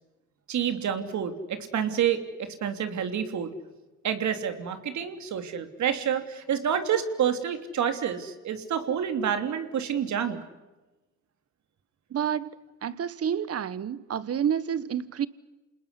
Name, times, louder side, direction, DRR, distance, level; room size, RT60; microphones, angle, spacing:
voice 1, 0.5-3.5 4.0-10.4, right 8 dB, 70° right, 3.2 m, -28 dB
voice 2, 12.1-12.6 12.8-15.3, right 8 dB, 50° right, 1.4 m, -29 dB
28.5 x 20.0 x 9.9 m
cardioid pair, 90°, 30 cm